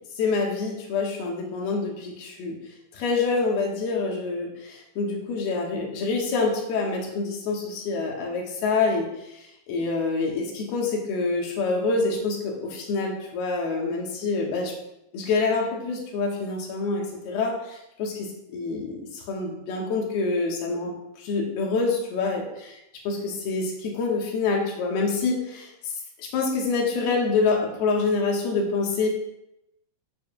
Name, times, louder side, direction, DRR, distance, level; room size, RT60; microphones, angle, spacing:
voice 1, 0.2-2.6 2.9-14.7 15.1-22.4 23.0-25.9 26.2-29.1, left 4 dB, 80° left, -1 dB, 3.4 m, -26 dB
14.5 x 7.2 x 2.4 m, 0.85 s
omnidirectional pair, 4.4 m